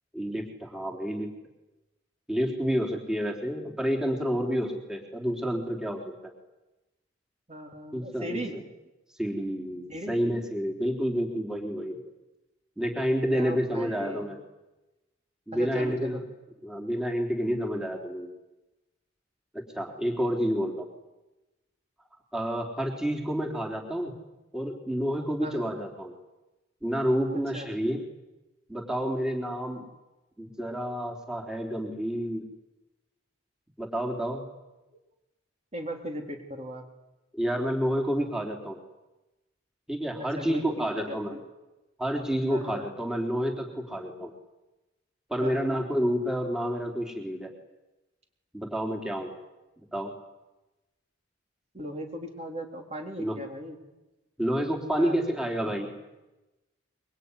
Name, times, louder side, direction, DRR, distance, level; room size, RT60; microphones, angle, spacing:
voice 1, 0.1-1.3 2.3-6.3 7.9-8.6 9.2-12.0 12.8-14.4 15.5-16.2 16.6-18.3 19.5-20.9 22.3-24.1 24.5-26.1 26.8-28.0 28.7-29.9 30.4-32.5 33.8-34.4 37.3-38.8 39.9-41.3 42.0-44.3 45.3-47.5 48.5-49.3 49.9-50.1 53.2-53.4 54.4-55.9, equal, 5° right, 1 dB, 3.6 m, -29 dB
voice 2, 7.5-8.5 9.9-10.2 13.3-14.3 15.5-16.2 25.4-25.7 27.5-27.7 35.7-36.9 40.2-41.4 42.5-42.9 45.4-45.7 51.7-53.8 55.0-55.2, right 1 dB, 35° right, 2 dB, 3.9 m, -38 dB
24.5 x 23.5 x 9.9 m, 1.0 s
head